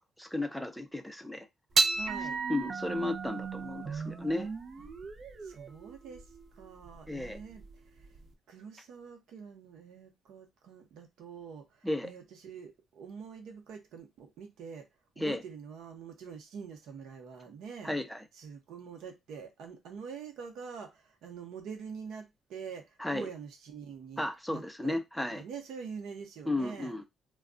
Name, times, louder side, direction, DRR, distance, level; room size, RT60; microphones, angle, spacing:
voice 1, 0.2-1.5 2.5-4.5 7.1-7.4 11.8-12.1 15.2-15.4 17.8-18.2 23.0-23.3 24.2-25.4 26.5-27.0, left 1 dB, ahead, 0.6 m, -34 dB
sound 1, 1.7-8.3, right 4 dB, 45° right, 0.5 m, -34 dB
voice 2, 1.9-2.4 4.8-4.9 5.4-6.2 6.5-8.1 8.5-14.9 15.1-17.9 18.3-25.0 25.3-26.9, right 6 dB, 80° right, 0.8 m, -45 dB
2.3 x 2.2 x 3.7 m
cardioid pair, 90°, 0 cm